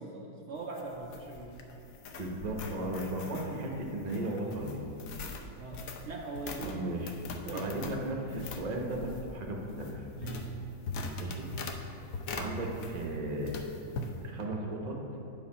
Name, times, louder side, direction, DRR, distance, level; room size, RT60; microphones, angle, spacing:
voice 1, 0.0-1.5 3.5-3.6 5.6-6.8 7.3-7.7 10.2-10.8 11.9-12.1, right 3 dB, 90° right, -1 dB, 0.6 m, -41 dB
sound 1, 0.5-13.2 13.4-14.1, left 3 dB, 75° left, 0.8 m, -42 dB
voice 2, 2.2-4.8 6.6-7.1 7.5-10.1 11.2-11.5 12.4-13.5 14.2-15.0, right 1 dB, 35° right, 0 dB, 0.6 m, -35 dB
9.0 x 4.7 x 5.7 m, 2.9 s
omnidirectional pair, 2.1 m